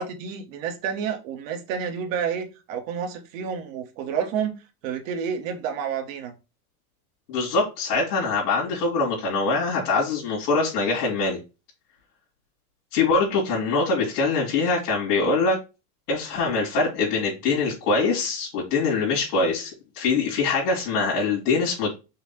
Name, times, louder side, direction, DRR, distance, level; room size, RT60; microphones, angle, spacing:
voice 1, 0.0-4.6 4.8-6.3, right 7 dB, 60° right, 5 dB, 1.3 m, -29 dB
voice 2, 7.3-11.4 12.9-15.6 16.1-21.9, left 4 dB, 90° left, -4 dB, 2.6 m, -23 dB
5.7 x 2.3 x 4.1 m, 0.28 s
supercardioid pair, 175°, 45 cm